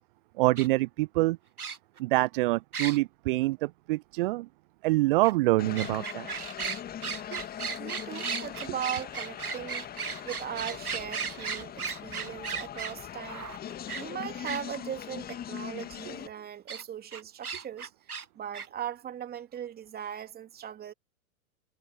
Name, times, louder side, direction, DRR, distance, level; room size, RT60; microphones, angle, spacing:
voice 1, 0.4-1.4 2.0-4.5 4.8-6.3 7.3-7.4, right 20 dB, 40° right, 0.6 m, -26 dB
sound 1, 0.6-0.7 1.6-2.0 2.7-3.0 5.2-5.3 5.7-14.6 16.7-16.8 17.1-18.2 18.5-18.7, right 6 dB, 90° right, 0.9 m, -36 dB
sound 2, 5.6-16.3, left 10 dB, 20° left, 1.9 m, -41 dB
voice 2, 7.8-13.5 14.0-20.9, right 9 dB, 20° right, 3.0 m, -39 dB
figure-of-eight pair, 100°, 43 cm